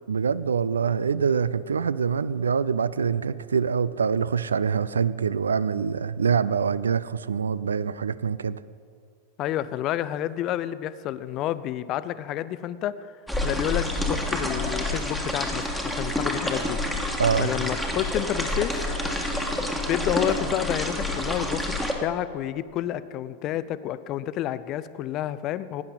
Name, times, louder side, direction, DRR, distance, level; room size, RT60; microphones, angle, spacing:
voice 1, 0.1-8.6 17.2-17.5, right 6 dB, 70° right, 0.3 m, -25 dB
voice 2, 9.4-13.1 13.4-16.8 17.1-18.8 19.9-25.8, left 12 dB, 35° left, 0.5 m, -30 dB
sound 1, 13.3-21.9, left 1 dB, 5° right, 1.7 m, -28 dB
18.0 x 9.8 x 4.1 m
figure-of-eight pair, 90°, 0 cm